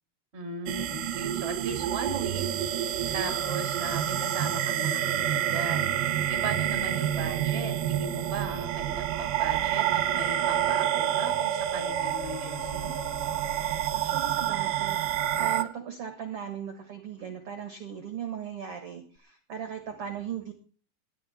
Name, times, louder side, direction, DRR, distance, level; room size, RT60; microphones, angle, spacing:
voice 1, 0.3-2.4 3.1-12.9, right 3 dB, 20° right, 6 dB, 2.0 m, -37 dB
sound 1, 0.7-15.6, right 11 dB, 75° right, 2.4 m, -28 dB
sound 2, 11.7-15.5 19.2-19.3, left 6 dB, 75° left, 1.4 m, -45 dB
voice 2, 13.6-20.5, right 8 dB, 50° right, 7 dB, 1.9 m, -38 dB
18.5 x 12.0 x 4.3 m, 0.41 s
omnidirectional pair, 4.6 m